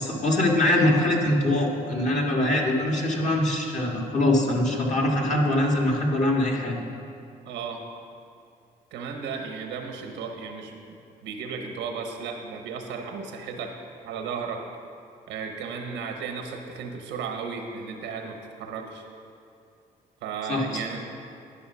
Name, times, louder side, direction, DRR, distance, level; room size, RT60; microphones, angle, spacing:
voice 1, 0.0-6.8 20.5-20.8, left 1 dB, 40° left, -2 dB, 1.9 m, -23 dB
voice 2, 7.4-7.8 8.9-10.9 11.2-13.7 14.0-14.6 15.3-19.0 20.2-21.0, right 5 dB, 90° right, 4 dB, 1.0 m, -34 dB
10.5 x 5.7 x 5.6 m, 2.5 s
supercardioid pair, 70°, 18 cm